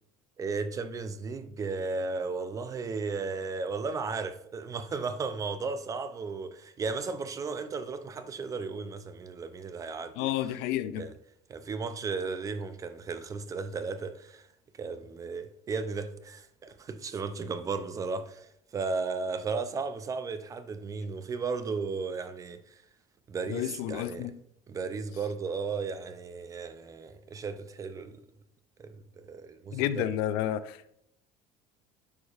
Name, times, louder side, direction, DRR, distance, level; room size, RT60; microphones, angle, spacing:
voice 1, 0.4-10.3 11.0-11.1 11.5-14.4 14.8-22.6 23.3-24.3 24.7-28.2 28.8-30.1, right 4 dB, 20° right, 0.3 m, -35 dB
voice 2, 10.2-11.1 23.5-24.3 29.7-30.9, left 12 dB, 75° left, 0.4 m, -31 dB
9.6 x 4.8 x 2.4 m
cardioid pair, 165°, 16 cm